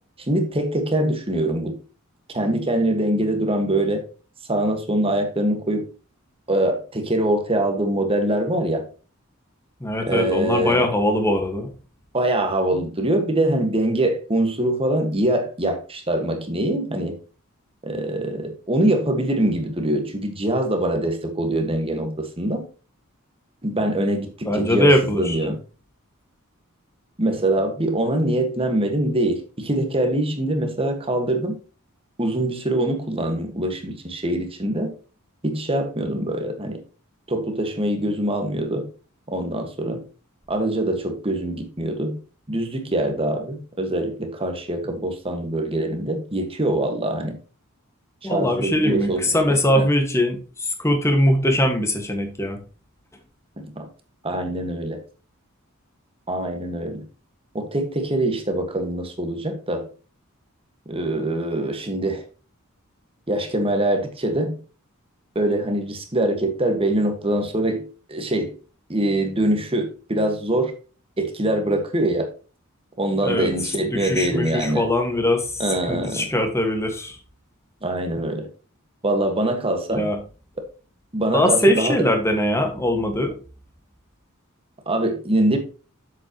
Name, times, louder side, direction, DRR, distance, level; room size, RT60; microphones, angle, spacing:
voice 1, 0.2-1.8 2.3-4.0 4.5-5.9 6.5-8.8 10.1-10.9 12.1-17.2 17.8-22.6 23.6-25.6 27.2-31.6 32.2-34.9 35.4-36.8 37.3-38.9 39.3-40.0 40.5-42.2 42.5-47.4 48.2-49.9 53.6-53.9 54.2-55.0 56.3-57.0 57.5-59.9 60.9-62.2 63.3-64.6 65.3-68.5 68.9-70.7 71.2-72.3 73.0-74.8 75.6-76.3 77.8-78.5 79.0-80.1 81.1-82.0 84.8-85.6, right 1 dB, 25° right, 5 dB, 1.6 m, -23 dB
voice 2, 9.8-11.7 24.4-25.4 48.2-52.6 73.2-73.5 73.8-75.5 75.9-77.1 79.9-80.2 81.3-83.4, left 1 dB, 15° left, 4 dB, 1.6 m, -21 dB
7.6 x 7.6 x 3.0 m, 0.35 s
head